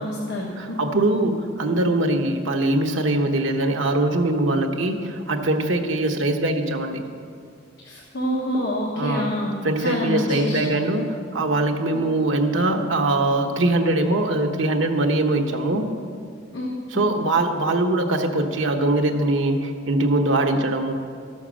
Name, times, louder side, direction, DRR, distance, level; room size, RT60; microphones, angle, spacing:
voice 1, 0.0-0.5 7.8-9.6 9.8-10.7 16.5-16.7, equal, 60° left, -2 dB, 1.3 m, -26 dB
voice 2, 0.6-7.0 8.9-9.3 9.6-15.9 16.9-20.9, right 2 dB, 75° right, 3 dB, 1.0 m, -22 dB
13.0 x 6.5 x 6.2 m, 2.2 s
head